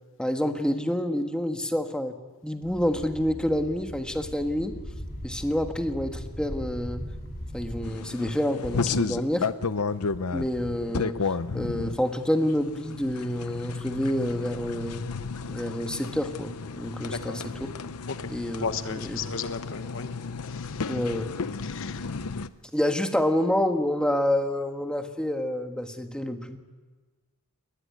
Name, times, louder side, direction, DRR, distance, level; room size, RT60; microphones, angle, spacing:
voice 1, 0.2-2.1 2.4-4.7 5.2-7.0 7.5-9.5 10.3-15.0 15.5-17.7 18.3-19.2 20.9-21.3 22.7-26.6, left 1 dB, 5° left, 5 dB, 1.5 m, -28 dB
sound 1, 2.6-7.9, equal, 45° left, 4.1 m, -39 dB
sound 2, 7.8-22.5, left 4 dB, 80° left, 0.8 m, -33 dB
voice 2, 18.6-20.1 20.5-20.9 21.6-22.1, left 5 dB, 60° left, 10 dB, 1.1 m, -35 dB
20.5 x 19.0 x 9.6 m, 1.3 s
head